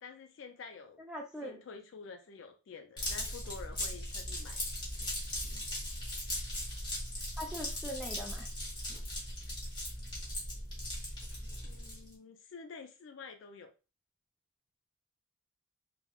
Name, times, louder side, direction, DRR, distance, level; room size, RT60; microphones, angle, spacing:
voice 1, 0.0-1.0 1.4-4.6 11.6-13.7, left 5 dB, 60° left, 6 dB, 0.4 m, -49 dB
voice 2, 1.0-1.6 7.4-8.5, equal, 5° right, 0 dB, 0.4 m, -41 dB
sound 1, 3.0-12.1, left 1 dB, 20° left, 0.9 m, -38 dB
3.4 x 2.1 x 2.3 m, 0.31 s
head